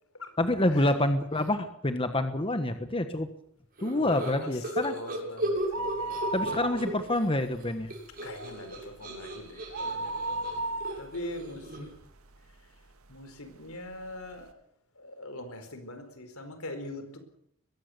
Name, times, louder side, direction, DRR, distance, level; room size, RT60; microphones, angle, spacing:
voice 1, 0.4-3.3 3.8-4.9 6.3-7.9, left 1 dB, 25° left, 8 dB, 1.4 m, -27 dB
sound 1, 3.8-7.3 7.5-12.0, right 1 dB, 45° right, 7.7 m, -36 dB
voice 2, 3.9-4.6 4.8-6.6 8.2-11.9 13.1-14.5 15.0-17.2, left 1 dB, 85° left, 8 dB, 4.5 m, -42 dB
sound 2, 5.6-7.2 7.5-7.6 8.1-12.5 13.0-13.1 13.9-14.0 14.2-14.3, right 2 dB, 90° right, 2.0 m, -35 dB
22.0 x 16.0 x 8.2 m, 0.72 s
head